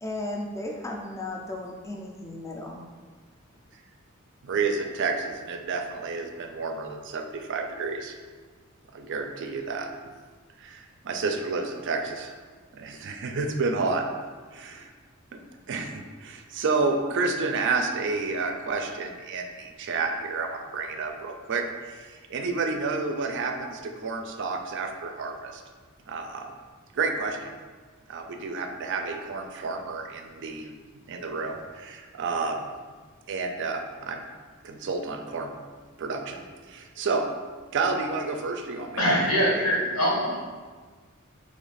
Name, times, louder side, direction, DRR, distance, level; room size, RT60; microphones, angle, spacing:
voice 1, 0.0-2.8, left 2 dB, 15° left, 0 dB, 0.3 m, -35 dB
voice 2, 4.4-8.2 8.9-9.9 10.6-12.3 12.7-14.1 14.5-14.9 15.3-15.4 15.7-25.6 26.1-26.5 26.9-27.6 28.1-32.7 33.3-34.3 34.6-35.6 36.0-37.2 37.7-39.2, right 4 dB, 55° right, 5 dB, 0.4 m, -30 dB
voice 3, 39.0-40.4, equal, 85° left, -4 dB, 1.2 m, -23 dB
3.3 x 3.1 x 4.0 m, 1.4 s
head